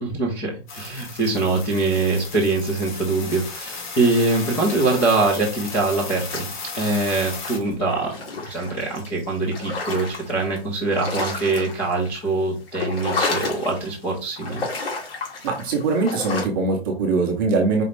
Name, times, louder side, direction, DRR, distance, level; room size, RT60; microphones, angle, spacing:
voice 1, 0.0-8.2 8.4-14.7, right 3 dB, 5° left, -4 dB, 0.5 m, -23 dB
sound 1, 0.7-7.6, left 4 dB, 45° left, 1.4 m, -35 dB
sound 2, 6.1-6.9 7.2-10.6 10.9-12.3 12.6-14.0 14.3-16.5, left 4 dB, 65° left, 1.9 m, -31 dB
voice 2, 15.4-17.8, right 3 dB, 20° right, 1 dB, 0.8 m, -22 dB
5.1 x 2.7 x 3.2 m, 0.30 s
hypercardioid pair, 165°, 32 cm